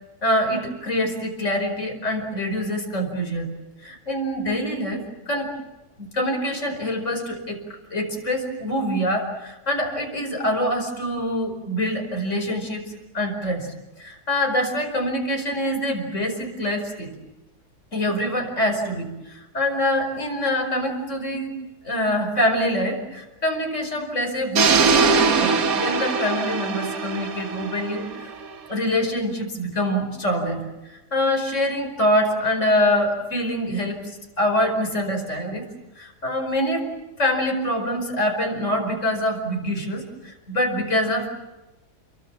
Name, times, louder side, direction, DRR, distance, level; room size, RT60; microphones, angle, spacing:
voice 1, 0.2-3.5 3.8-5.5 6.0-7.6 7.9-13.7 14.0-17.1 17.9-21.6 21.8-28.3 28.7-34.1 34.4-35.7 36.0-36.9 37.2-41.4, equal, 45° left, 3 dB, 5.4 m, -25 dB
sound 1, 24.5-28.6, right 5 dB, 65° right, 1.7 m, -21 dB
30.0 x 23.0 x 7.4 m, 1.0 s
omnidirectional pair, 1.7 m